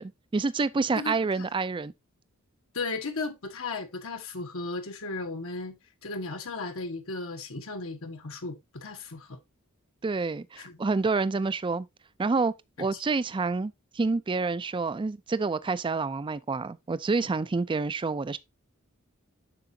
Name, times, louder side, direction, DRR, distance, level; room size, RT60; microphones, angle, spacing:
voice 1, 0.0-1.9 10.0-11.9 12.2-12.5 12.8-18.4, right 4 dB, 25° right, 0.4 m, -28 dB
voice 2, 1.0-1.5 2.7-5.8 6.0-9.4 10.6-10.8 12.9-13.0, left 3 dB, 70° left, 1.3 m, -35 dB
7.6 x 6.0 x 2.7 m
head